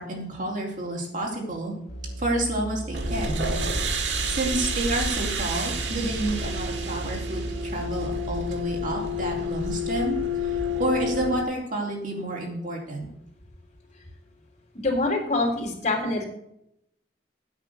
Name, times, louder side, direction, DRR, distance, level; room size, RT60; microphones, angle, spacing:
voice 1, 0.0-1.7 2.2-3.5 4.2-10.2 10.4-13.1, right 1 dB, 45° right, 0 dB, 3.8 m, -29 dB
Musical instrument, 1.9-8.6, right 1 dB, 70° left, 2.7 m, -36 dB
sound 1, 2.9-11.4, left 1 dB, 80° right, 2.0 m, -29 dB
voice 2, 14.8-16.3, left 2 dB, 40° left, -1 dB, 4.0 m, -25 dB
9.5 x 8.1 x 6.9 m, 0.77 s
head